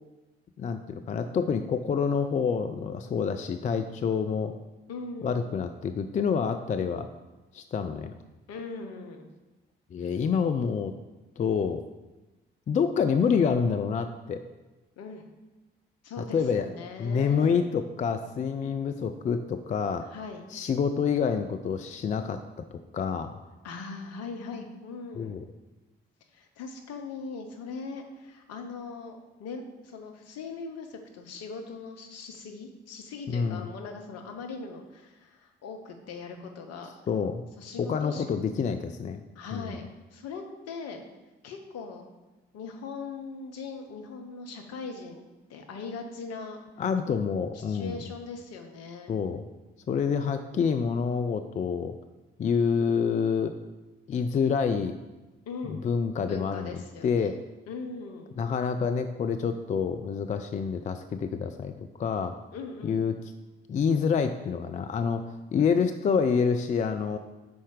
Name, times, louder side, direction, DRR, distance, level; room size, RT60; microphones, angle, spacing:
voice 1, 0.6-4.5 5.2-7.1 7.5-8.1 9.9-10.9 11.4-11.8 12.7-14.4 16.2-16.7 17.0-20.1 20.5-22.4 22.7-23.4 25.2-25.4 33.3-33.7 37.1-37.5 37.8-39.2 39.5-39.8 46.8-48.0 49.1-49.4 49.9-51.9 52.4-53.6 54.1-55.0 55.7-57.4 58.4-62.3 62.8-63.2 63.7-67.2, left 6 dB, 25° left, 8 dB, 0.4 m, -27 dB
voice 2, 4.9-5.4 8.5-9.3 10.0-10.1 15.0-15.2 16.0-17.6 20.1-20.5 23.6-25.4 26.3-36.9 37.6-38.2 39.3-39.8 40.1-41.0 41.4-42.0 42.5-46.6 47.5-49.2 55.5-55.8 56.3-57.3 57.7-58.3 62.5-63.0, left 4 dB, 55° left, 4 dB, 0.9 m, -40 dB
5.5 x 4.3 x 4.7 m, 1.1 s
figure-of-eight pair, 40°, 29 cm